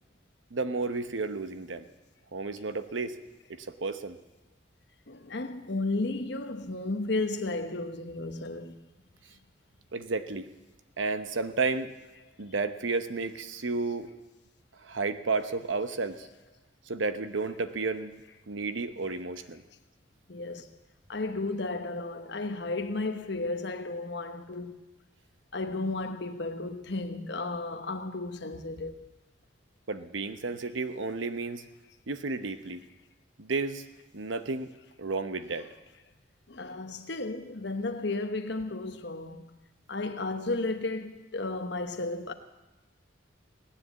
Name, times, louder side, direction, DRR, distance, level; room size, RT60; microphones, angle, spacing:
voice 1, 0.5-1.9 2.3-3.1 3.6-4.2 9.9-10.5 11.0-11.9 12.4-14.1 14.8-16.3 16.9-18.1 18.5-19.6 29.9-31.6 32.1-32.8 33.4-33.8 34.1-34.7 35.0-35.7, right 3 dB, 85° right, 0.9 m, -32 dB
voice 2, 5.1-8.8 20.3-20.8 21.1-24.7 25.5-29.1 36.5-39.6 39.9-42.3, left 2 dB, 60° left, 1.1 m, -33 dB
17.5 x 10.0 x 8.1 m
head